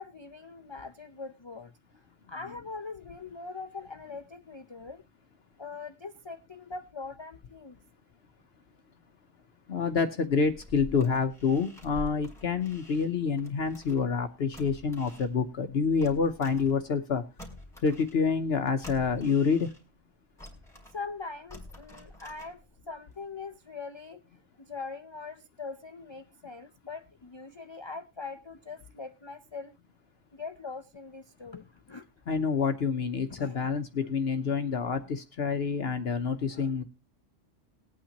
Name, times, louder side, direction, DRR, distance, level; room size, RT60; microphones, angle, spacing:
voice 1, 0.0-1.7 2.3-5.0 5.6-7.8 20.9-22.6 22.9-24.2 24.6-29.8 30.3-32.1 33.3-33.8 36.5-36.7, left 4 dB, 35° left, 8 dB, 0.4 m, -42 dB
voice 2, 9.7-17.2 17.8-19.7 32.3-36.8, left 5 dB, 60° left, 7 dB, 1.0 m, -27 dB
sound 1, 10.5-14.2 14.5-17.1 17.4-20.0 20.4-22.9 23.3-23.4, left 1 dB, ahead, 2.4 m, -47 dB
20.0 x 8.7 x 2.8 m, 0.27 s
omnidirectional pair, 1.3 m